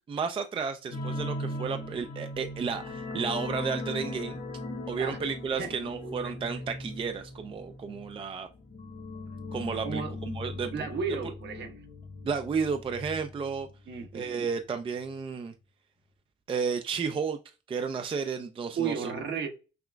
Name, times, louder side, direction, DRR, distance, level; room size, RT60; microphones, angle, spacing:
voice 1, 0.1-4.4 4.9-8.5 9.5-10.9 12.2-13.7 14.1-15.5 16.5-17.4 17.7-19.1, right 5 dB, 25° right, 0.4 m, -32 dB
sound 1, 0.9-14.2 14.5-14.7 15.0-15.1, left 2 dB, 50° left, 1.2 m, -39 dB
voice 2, 6.0-6.4 9.8-10.1 10.7-11.7 13.9-14.5 18.8-19.5, right 6 dB, 60° right, 1.0 m, -34 dB
5.8 x 2.3 x 2.2 m
cardioid pair, 90°, 20 cm